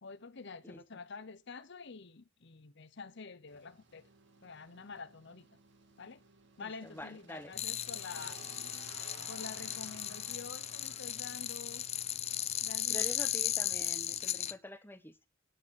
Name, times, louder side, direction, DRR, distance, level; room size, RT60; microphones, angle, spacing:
voice 1, 0.0-4.1 4.4-5.5 6.0-6.2 6.6-8.4 9.3-11.8 12.6-13.1, left 4 dB, 60° left, 0.8 m, -48 dB
sound 1, 3.5-13.1, right 4 dB, 60° right, 2.0 m, -57 dB
voice 2, 6.6-7.5 12.9-15.2, left 1 dB, 10° left, 1.0 m, -46 dB
sound 2, 7.5-14.5, left 11 dB, 30° left, 0.5 m, -36 dB
9.9 x 7.3 x 7.5 m
head